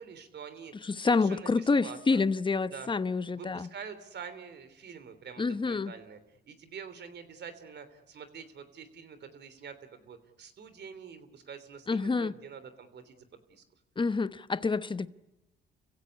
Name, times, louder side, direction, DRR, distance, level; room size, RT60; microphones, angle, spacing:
voice 1, 0.0-2.2 2.7-2.9 3.3-13.6, right 6 dB, 60° right, 3.3 m, -46 dB
voice 2, 0.9-3.7 5.4-5.9 11.9-12.3 14.0-15.1, left 4 dB, 25° left, 1.0 m, -28 dB
29.5 x 16.0 x 9.9 m
cardioid pair, 90°, 20 cm